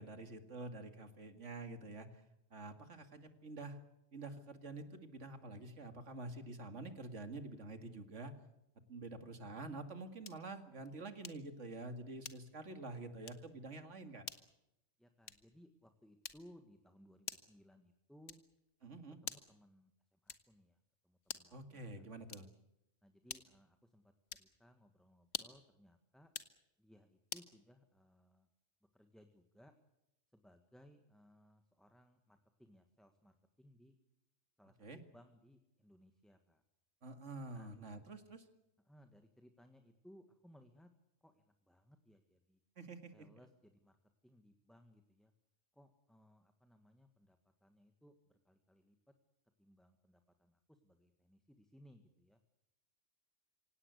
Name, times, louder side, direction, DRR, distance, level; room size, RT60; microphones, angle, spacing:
voice 1, 0.0-2.2 2.5-3.8 4.1-8.4 8.9-14.2 18.8-19.2 21.5-22.5 34.8-35.0 37.0-38.5 42.8-43.3, right 2 dB, 75° right, 8 dB, 2.5 m, -48 dB
sound 1, 10.2-10.5 11.2-11.6 12.2-12.7 13.2-13.5 14.2-14.5 15.2-15.6 16.2-16.6 17.2-17.6 18.2-18.6 19.2-19.6 20.3-20.6 21.2-21.6 22.2-22.7 23.3-23.7 24.3-24.6 25.2-25.7 26.2-26.6 27.3-27.5, left 6 dB, 85° left, 1.7 m, -48 dB
voice 2, 15.0-18.4 19.2-22.0 23.0-24.1 24.4-26.3 26.8-28.5 28.9-29.7 30.3-34.0 34.6-36.6 37.5-37.7 38.8-40.9 41.2-42.6 43.1-44.0 44.2-45.3 45.7-49.1 49.6-52.4, equal, ahead, 6 dB, 1.5 m, -64 dB
26.5 x 17.5 x 8.2 m, 0.87 s
omnidirectional pair, 1.3 m